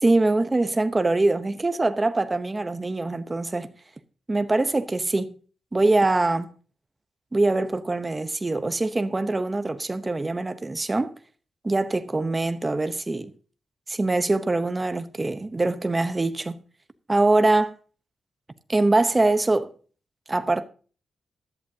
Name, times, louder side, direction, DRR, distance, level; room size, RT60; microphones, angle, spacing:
voice 1, 0.0-3.7 4.3-5.4 5.7-6.5 7.3-11.1 11.6-13.3 13.9-16.6 17.1-17.7 18.7-19.7 20.3-20.6, right 2 dB, 20° right, 0.9 m, -23 dB
16.0 x 11.5 x 2.8 m
wide cardioid pair, 135°, 0 cm